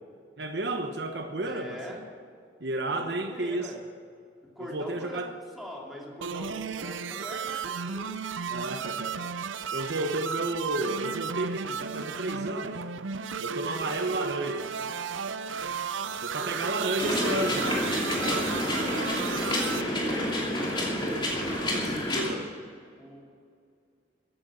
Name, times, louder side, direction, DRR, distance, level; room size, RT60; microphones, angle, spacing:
voice 1, 0.4-2.0 2.6-3.7 4.6-5.3 8.5-9.3 9.7-12.9 13.4-14.7 16.1-17.9 18.2-18.6 20.6-20.7 21.6-22.5, right 2 dB, 60° right, 6 dB, 1.0 m, -32 dB
voice 2, 1.4-2.0 2.9-3.8 4.6-8.1 16.4-17.3 19.1-20.0 23.0-23.2, equal, ahead, -3 dB, 2.7 m, -42 dB
sound 1, 6.2-19.8, right 6 dB, 85° right, 0.6 m, -34 dB
sound 2, 17.0-22.3, left 1 dB, 25° left, 2.8 m, -29 dB
15.0 x 10.0 x 7.0 m, 2.2 s
head